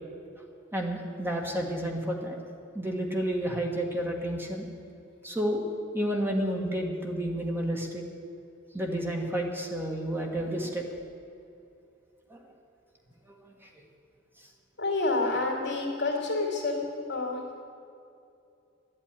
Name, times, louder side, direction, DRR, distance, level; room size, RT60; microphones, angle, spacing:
voice 1, 0.7-2.3 2.7-4.7 5.2-5.6 5.9-8.0 8.7-10.8 12.3-12.4, right 1 dB, 10° right, 1 dB, 1.7 m, -30 dB
voice 2, 14.8-16.8 17.1-17.6, left 3 dB, 55° left, -1 dB, 2.8 m, -28 dB
12.0 x 8.8 x 10.0 m, 2.6 s
head